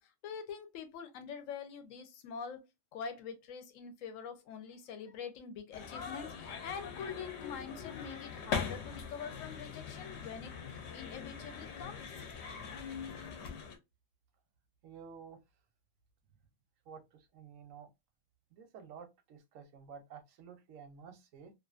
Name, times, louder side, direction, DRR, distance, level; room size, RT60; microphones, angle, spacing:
voice 1, 0.0-2.6 2.9-12.2, left 6 dB, 90° left, 1.0 m, -45 dB
sound 1, 5.7-13.8, left 6 dB, 65° left, 0.8 m, -42 dB
voice 2, 14.8-15.4 16.9-17.9 18.5-21.5, right 6 dB, 85° right, 1.0 m, -52 dB
2.5 x 2.4 x 2.3 m
omnidirectional pair, 1.3 m